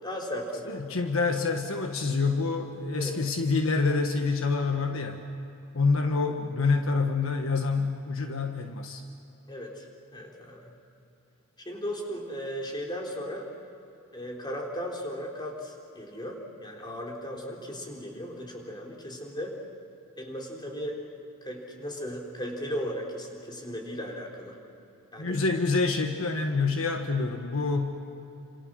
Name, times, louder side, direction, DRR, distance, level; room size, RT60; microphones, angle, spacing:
voice 1, 0.0-0.8 2.9-3.2 9.5-10.7 11.6-13.5 14.1-19.6 20.2-21.0 21.4-24.6 25.1-25.4, equal, 20° left, 0 dB, 4.0 m, -36 dB
voice 2, 0.7-5.2 5.7-9.0 25.2-28.1, left 4 dB, 70° left, 4 dB, 1.5 m, -27 dB
29.0 x 27.0 x 6.4 m, 2.9 s
head